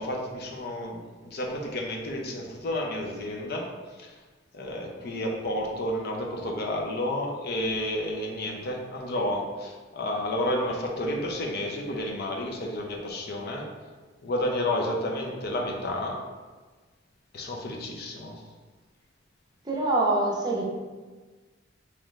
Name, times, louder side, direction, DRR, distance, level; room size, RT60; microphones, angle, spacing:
voice 1, 0.0-3.7 4.0-4.1 4.5-13.7 14.2-16.2 17.3-18.3, left 1 dB, 55° left, 0 dB, 0.6 m, -31 dB
voice 2, 19.6-20.6, right 2 dB, 20° right, -2 dB, 0.6 m, -24 dB
3.7 x 3.1 x 3.1 m, 1.4 s
head